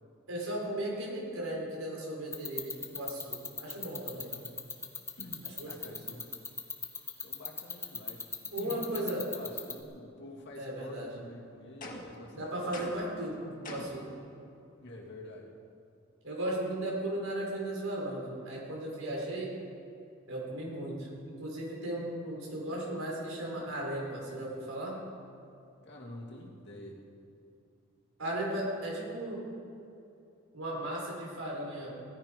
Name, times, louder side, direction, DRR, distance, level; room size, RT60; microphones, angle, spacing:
voice 1, 0.3-4.3 5.4-5.9 8.5-9.2 10.6-11.1 12.3-14.1 16.2-19.5 20.3-21.1 21.4-24.9 28.2-29.4 30.5-31.9, right 1 dB, 85° right, -3 dB, 4.8 m, -36 dB
sound 1, 2.3-9.8, left 5 dB, 15° left, 1.1 m, -36 dB
voice 2, 5.2-6.3 7.2-8.3 8.5-12.8 14.8-15.5 25.8-27.0, left 1 dB, 55° left, -2 dB, 2.5 m, -48 dB
sound 2, 11.8-12.2 12.7-13.2 13.6-14.1, left 1 dB, 40° left, 1.7 m, -43 dB
17.0 x 13.5 x 5.3 m, 2.6 s
head